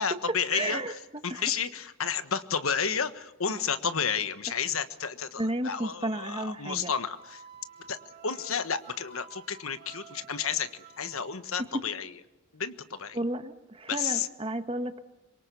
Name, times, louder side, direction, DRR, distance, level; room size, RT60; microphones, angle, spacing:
voice 1, 0.0-7.4 7.9-8.0 8.2-12.1 12.5-13.2 13.9-14.3, left 7 dB, 75° left, 11 dB, 1.4 m, -31 dB
voice 2, 0.5-0.9 1.3-1.4 5.4-6.9 13.1-15.0, right 1 dB, 25° right, 9 dB, 1.4 m, -32 dB
Wind instrument woodwind instrument, 7.1-11.3, right 5 dB, 45° right, 4.5 m, -51 dB
26.0 x 23.5 x 7.0 m, 0.99 s
head